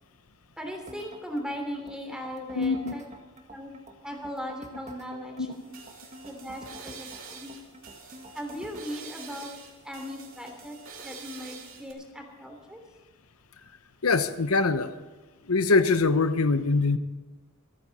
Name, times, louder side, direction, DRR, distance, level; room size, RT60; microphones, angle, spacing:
voice 1, 0.6-3.1 3.5-3.7 4.0-5.7 6.2-7.6 8.3-9.5 9.8-10.8 11.0-12.8, equal, 5° right, 2 dB, 3.2 m, -38 dB
sound 1, 0.9-8.9, right 1 dB, 35° right, 1.6 m, -48 dB
voice 2, 2.5-2.9 5.3-5.5 14.0-14.9 15.5-17.0, left 3 dB, 85° left, 11 dB, 1.0 m, -23 dB
sound 2, 5.5-11.9, right 5 dB, 70° right, 3.3 m, -46 dB
26.5 x 9.4 x 4.2 m, 1.3 s
head